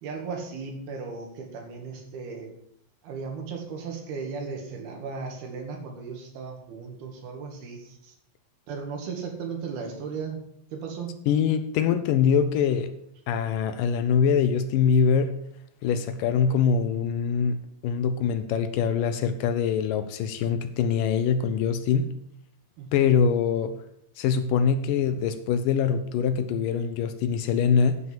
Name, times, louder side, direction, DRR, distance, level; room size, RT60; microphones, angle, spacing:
voice 1, 0.0-2.5 3.0-8.2 8.7-10.4 10.7-11.1 22.8-23.1, right 5 dB, 85° right, 2 dB, 4.1 m, -36 dB
voice 2, 11.3-12.9 13.3-15.3 15.8-22.1 22.9-23.8 24.2-28.0, left 7 dB, 75° left, 10 dB, 2.2 m, -23 dB
9.7 x 8.0 x 7.3 m, 0.71 s
omnidirectional pair, 4.3 m